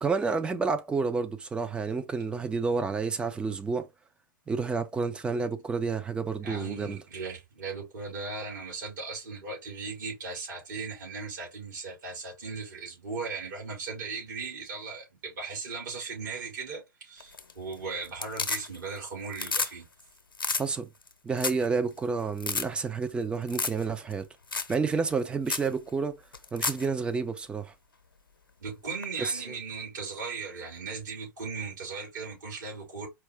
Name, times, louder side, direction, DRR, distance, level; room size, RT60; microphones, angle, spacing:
voice 1, 0.0-3.9 4.5-7.0 20.6-20.9 21.2-24.3 24.7-26.2 26.5-27.7 29.2-29.4, right 4 dB, 10° right, 0.5 m, -30 dB
voice 2, 6.4-19.9 28.6-33.1, right 4 dB, 55° right, 3.2 m, -37 dB
sound 1, 17.2-17.7 18.0-19.0 19.3-19.7 20.0-20.1 20.3-20.6 21.1-21.2 21.4-21.7 22.0-22.1 22.4-22.6 23.5-23.8 24.1-24.2 24.5-24.7 25.1-25.2 25.5-25.7 26.3-26.8 29.0-29.1, left 4 dB, 75° left, 0.8 m, -31 dB
4.5 x 2.7 x 3.5 m
figure-of-eight pair, 105°, 12 cm